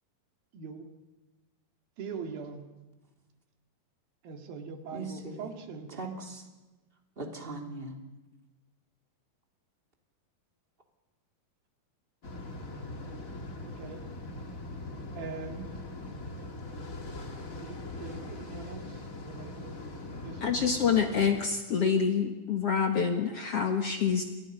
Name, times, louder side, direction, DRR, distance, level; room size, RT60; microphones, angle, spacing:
voice 1, 0.5-0.9 2.0-2.7 4.2-6.1 13.6-14.1 15.1-15.7 17.6-19.8 20.2-20.7, right 5 dB, 80° right, 5 dB, 3.8 m, -42 dB
voice 2, 4.9-5.5 5.9-6.5 7.2-8.0, right 2 dB, 15° right, 2 dB, 2.9 m, -39 dB
sound 1, 12.2-21.4, left 2 dB, 30° left, 1.9 m, -41 dB
voice 3, 20.4-24.2, left 6 dB, 55° left, 4 dB, 1.9 m, -27 dB
29.5 x 25.0 x 5.5 m, 1.1 s
omnidirectional pair, 4.2 m